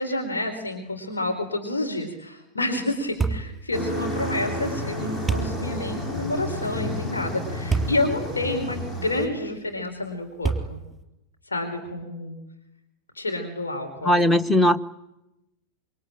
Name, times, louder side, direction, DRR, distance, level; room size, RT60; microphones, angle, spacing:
voice 1, 0.0-10.8 11.5-12.4 13.1-14.4, left 1 dB, 75° left, 3 dB, 4.1 m, -29 dB
sound 1, 3.2-3.5 5.3-5.6 7.7-8.0 8.6-8.7 10.4-10.9, right 4 dB, 10° right, 3.7 m, -25 dB
sound 2, 3.7-9.3, left 1 dB, 30° left, 7.6 m, -31 dB
voice 2, 14.0-14.8, left 1 dB, 5° left, 14 dB, 1.2 m, -18 dB
27.0 x 24.0 x 9.1 m, 0.91 s
figure-of-eight pair, 90°, 0 cm